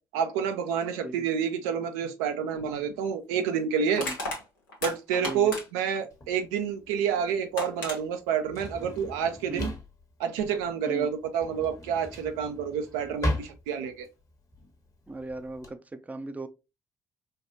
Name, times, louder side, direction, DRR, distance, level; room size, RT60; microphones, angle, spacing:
voice 1, 0.1-4.1 4.8-9.7 10.2-14.1, right 7 dB, 75° right, 0.4 m, -29 dB
Crushing, 2.6-2.7 3.9-5.9 7.1-7.2 7.6-8.0, left 2 dB, 80° left, 0.9 m, -34 dB
Drawer open or close, 6.1-15.7, left 1 dB, 35° left, 1.2 m, -37 dB
voice 2, 15.1-16.5, right 2 dB, 15° right, 0.5 m, -37 dB
4.4 x 2.3 x 2.7 m
hypercardioid pair, 50°, 10 cm